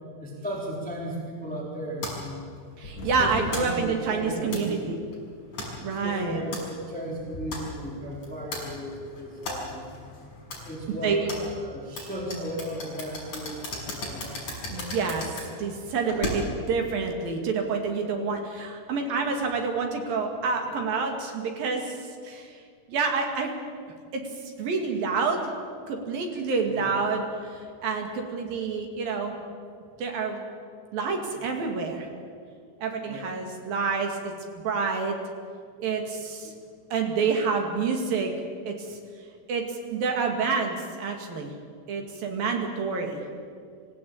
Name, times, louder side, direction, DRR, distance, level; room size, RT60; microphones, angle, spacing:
voice 1, 0.2-2.4 3.0-4.9 5.9-9.9 10.6-14.9 26.7-26.8 33.0-33.2 36.4-36.5, equal, ahead, -3 dB, 2.8 m, -36 dB
sound 1, 2.0-16.7, left 1 dB, 40° left, 7.2 m, -37 dB
voice 2, 2.8-4.8 5.8-6.4 10.9-11.3 14.7-15.3 15.6-22.0 22.2-22.5 22.9-23.5 24.1-24.2 24.6-25.4 25.9-29.3 30.0-30.4 30.9-32.1 32.8-34.3 34.6-35.2 35.8-36.5 36.9-38.3 38.7-39.0 39.5-39.6 39.9-41.5 41.9-43.2, right 5 dB, 55° right, 3 dB, 3.8 m, -28 dB
25.5 x 16.0 x 8.8 m, 2.1 s
omnidirectional pair, 5.4 m